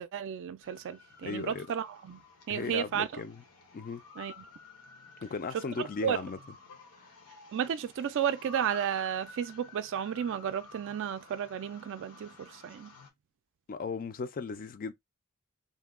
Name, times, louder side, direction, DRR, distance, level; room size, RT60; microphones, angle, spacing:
voice 1, 0.0-2.2 2.5-3.2 4.2-4.4 5.5-6.2 7.5-12.9, right 9 dB, 55° right, 0.3 m, -33 dB
sound 1, 0.6-13.1, left 4 dB, 85° left, 0.9 m, -52 dB
voice 2, 1.2-1.7 2.5-3.4 3.7-4.0 5.2-6.4 13.7-14.9, left 4 dB, 40° left, 0.3 m, -36 dB
2.7 x 2.2 x 3.5 m
head